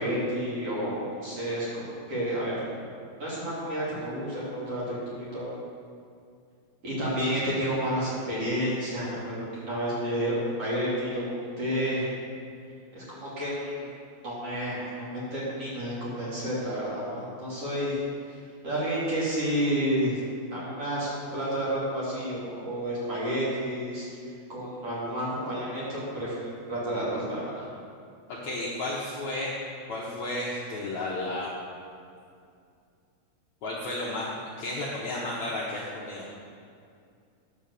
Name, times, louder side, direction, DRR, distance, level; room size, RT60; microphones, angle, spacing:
voice 1, 0.0-2.5 3.2-5.5 6.8-12.2 12.9-13.9 14.2-18.0 18.3-18.4 18.6-20.2 20.5-24.1 24.5-27.7, equal, 40° right, -8 dB, 3.2 m, -30 dB
voice 2, 28.3-29.5 29.9-31.5 33.6-36.2, left 2 dB, 65° left, -5 dB, 1.9 m, -33 dB
9.6 x 6.3 x 7.0 m, 2.4 s
omnidirectional pair, 4.5 m